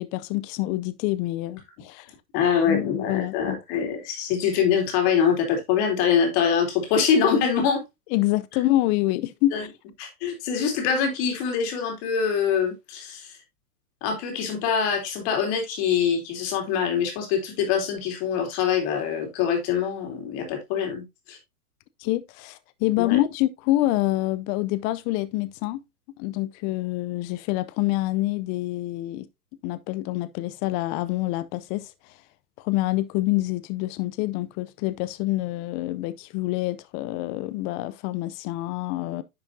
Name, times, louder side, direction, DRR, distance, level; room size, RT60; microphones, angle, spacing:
voice 1, 0.0-2.1 2.7-3.6 8.1-9.7 22.0-25.8 26.2-29.3 29.6-31.9 32.6-39.2, left 17 dB, 25° left, 0.4 m, -26 dB
voice 2, 2.3-7.8 9.5-9.6 10.0-13.4 14.0-21.4 23.0-23.2, left 7 dB, 45° left, 3.7 m, -24 dB
10.0 x 5.7 x 2.7 m
hypercardioid pair, 120°, 45 cm